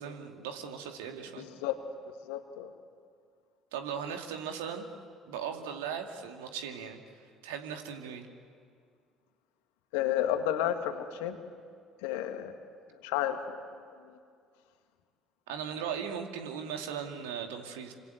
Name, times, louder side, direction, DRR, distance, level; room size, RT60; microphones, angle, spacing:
voice 1, 0.0-1.4 3.7-4.9 5.3-7.0 7.4-8.3 15.5-17.9, right 7 dB, 75° right, 4 dB, 2.4 m, -38 dB
voice 2, 1.4-1.8 2.3-2.7 9.9-11.4 12.0-12.5 13.0-13.6 14.1-14.2, left 11 dB, 70° left, 7 dB, 2.0 m, -31 dB
27.5 x 26.0 x 8.0 m, 2.2 s
figure-of-eight pair, 55°, 0 cm